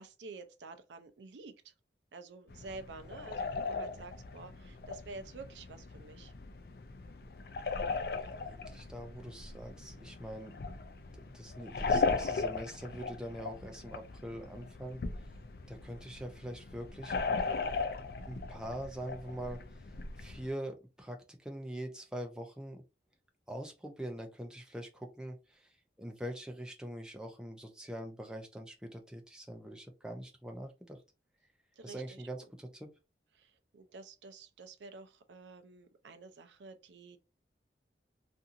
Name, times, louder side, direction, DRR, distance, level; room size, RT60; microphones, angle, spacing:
voice 1, 0.0-1.7 2.1-6.3 31.8-32.5 33.3-37.2, right 3 dB, 90° right, 0.5 m, -50 dB
sound 1, 2.5-20.5, left 4 dB, 60° left, 0.4 m, -38 dB
voice 2, 8.2-10.5 11.1-15.0 15.7-17.2 18.0-19.9 20.2-22.8 23.5-25.7 26.0-31.0 31.8-32.9, right 1 dB, 5° right, 0.4 m, -43 dB
2.7 x 2.5 x 2.4 m
head